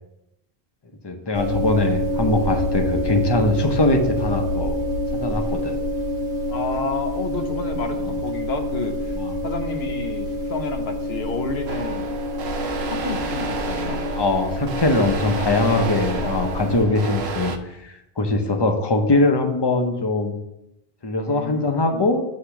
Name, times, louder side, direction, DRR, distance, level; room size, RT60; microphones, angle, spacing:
voice 1, 1.0-4.8 5.1-5.8 8.1-8.2 9.2-9.3 14.1-17.5 17.8-20.4 21.0-22.2, left 2 dB, 30° left, 5 dB, 0.7 m, -22 dB
sound 1, 1.3-16.8, left 1 dB, 55° left, 1.1 m, -27 dB
voice 2, 6.5-9.2 9.4-12.1 12.9-14.0 15.2-15.9 16.2-16.4 21.3-22.1, left 3 dB, 80° left, 5 dB, 1.1 m, -30 dB
sound 2, 11.7-17.6, right 4 dB, 90° right, 0.9 m, -31 dB
8.4 x 2.9 x 5.7 m, 0.86 s
omnidirectional pair, 1.0 m